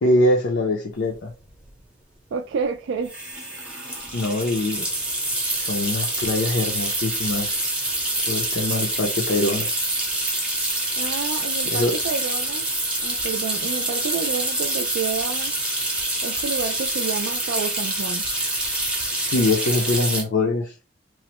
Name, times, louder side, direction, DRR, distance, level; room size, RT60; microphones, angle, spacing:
voice 1, 0.0-1.3 4.1-4.9 5.6-7.6 8.3-9.7 11.7-11.9 19.3-20.7, left 2 dB, 60° left, 0.5 m, -23 dB
sound 1, 1.1-1.2 1.4-1.7 3.0-20.2, right 1 dB, 5° right, 0.6 m, -26 dB
voice 2, 2.3-3.1 11.0-12.6 13.0-15.5 16.2-18.3, right 5 dB, 70° right, 0.3 m, -29 dB
3.0 x 2.0 x 2.9 m
head